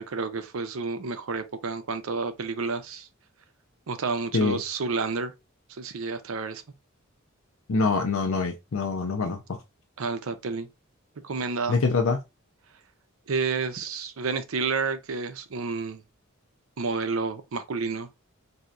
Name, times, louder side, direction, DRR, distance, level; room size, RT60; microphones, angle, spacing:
voice 1, 0.0-3.1 3.9-5.3 5.8-6.6 10.0-10.7 11.2-11.8 13.3-16.0 16.8-18.1, right 4 dB, 85° right, 0.6 m, -30 dB
voice 2, 7.7-9.4 11.7-12.2, left 4 dB, 75° left, 0.6 m, -24 dB
4.2 x 2.7 x 2.4 m
head